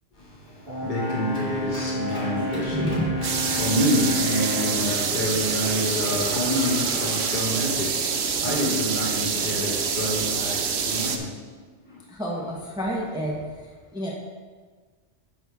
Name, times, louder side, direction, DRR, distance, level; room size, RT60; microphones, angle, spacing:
voice 1, 0.1-3.0 3.5-11.6 11.9-12.0, left 1 dB, 45° left, -5 dB, 1.8 m, -28 dB
Brass instrument, 0.6-4.9, equal, 50° right, 3.0 m, -30 dB
Clapping, 1.0-7.6, left 1 dB, 65° left, 3.0 m, -40 dB
voice 2, 2.7-3.1 3.5-3.6 8.4-8.8 12.1-14.1, equal, 5° right, -3 dB, 1.0 m, -30 dB
sound 1, 3.2-11.2, right 6 dB, 65° right, 0.9 m, -26 dB
8.9 x 6.3 x 3.6 m, 1.5 s
omnidirectional pair, 1.2 m